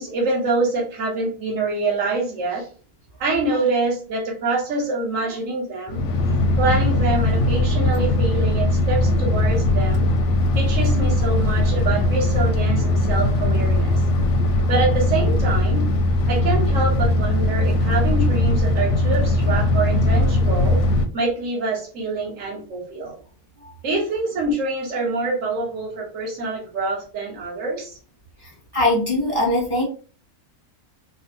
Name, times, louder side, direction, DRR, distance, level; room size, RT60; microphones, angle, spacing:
voice 1, 0.0-2.7 3.2-6.1 6.6-10.0 10.5-14.0 14.7-15.9 16.3-20.8 21.1-23.2 23.8-28.0, right 3 dB, 60° right, -2 dB, 1.4 m, -25 dB
sound 1, 5.9-21.1, left 1 dB, 65° left, 0.8 m, -19 dB
voice 2, 28.4-29.8, left 1 dB, 20° right, -3 dB, 0.9 m, -22 dB
3.6 x 2.2 x 2.8 m, 0.38 s
omnidirectional pair, 1.5 m